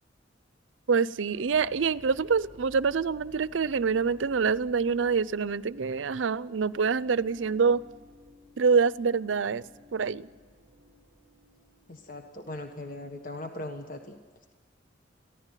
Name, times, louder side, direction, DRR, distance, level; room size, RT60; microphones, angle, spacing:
voice 1, 0.9-7.8 8.6-9.6 9.9-10.3, right 5 dB, 80° right, 18 dB, 0.5 m, -26 dB
sound 1, 1.2-13.2, left 1 dB, 15° left, 7.4 m, -56 dB
voice 2, 11.9-14.2, left 1 dB, 45° left, 5 dB, 1.4 m, -39 dB
22.5 x 15.5 x 9.1 m, 1.5 s
head